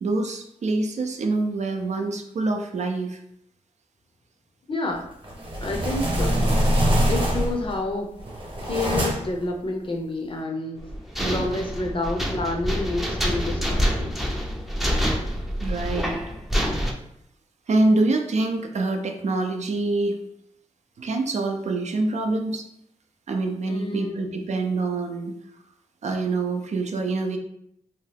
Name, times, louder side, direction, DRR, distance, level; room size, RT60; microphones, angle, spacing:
voice 1, 0.0-3.2 11.2-11.4 15.6-16.2 17.7-20.2 21.0-22.6 23.3-25.3 26.0-27.4, right 2 dB, 60° right, 4 dB, 0.4 m, -25 dB
voice 2, 4.7-5.1 5.6-6.3 7.1-8.2 8.6-10.9 11.3-14.2 23.7-24.7, left 2 dB, 40° left, 1 dB, 0.6 m, -29 dB
sound 1, 5.2-7.7 8.2-9.4, right 1 dB, 40° right, 0.9 m, -23 dB
sound 2, 10.8-16.9, equal, ahead, 0.5 m, -26 dB
2.8 x 2.3 x 3.3 m, 0.75 s
cardioid pair, 65°, 13 cm